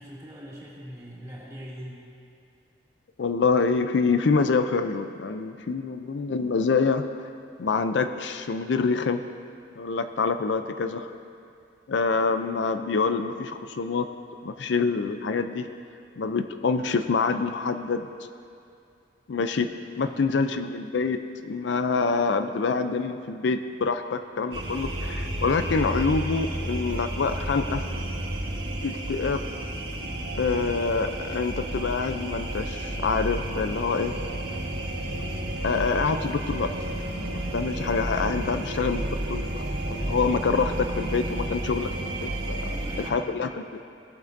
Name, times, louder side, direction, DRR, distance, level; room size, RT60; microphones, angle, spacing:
voice 1, 0.0-2.1 20.0-20.4 30.4-30.7 37.4-37.9 39.9-40.5 42.7-43.3, equal, 20° right, -8 dB, 2.4 m, -42 dB
voice 2, 3.2-7.1 7.6-9.2 9.8-11.1 11.9-14.1 14.4-15.7 16.2-18.1 19.3-27.9 28.8-29.5 30.4-34.2 35.6-36.7 37.1-39.6 39.9-42.7 43.1-43.5, left 4 dB, 75° left, 9 dB, 0.5 m, -26 dB
sound 1, 24.5-43.1, right 1 dB, 80° right, 1.4 m, -31 dB
17.5 x 8.6 x 2.6 m, 2.5 s
head